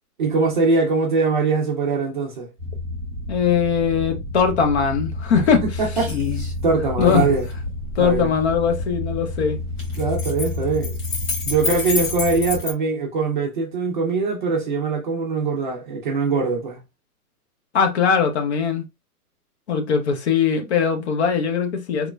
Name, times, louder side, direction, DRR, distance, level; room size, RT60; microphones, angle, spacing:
voice 1, 0.2-2.5 5.6-6.1 6.6-7.5 8.0-8.3 10.0-10.9 11.5-16.8, right 4 dB, 35° right, 0.4 m, -22 dB
sound 1, 2.6-12.6, left 2 dB, 5° right, 0.8 m, -30 dB
voice 2, 3.3-5.8 7.0-7.2 8.0-9.6 17.7-18.8 19.7-22.1, left 6 dB, 45° left, 0.6 m, -20 dB
sound 2, 4.6-4.8 5.1-5.6 6.0-6.5 7.0-8.9 9.7-12.7, left 4 dB, 75° left, 1.7 m, -28 dB
3.1 x 2.1 x 2.3 m
hypercardioid pair, 150°, 46 cm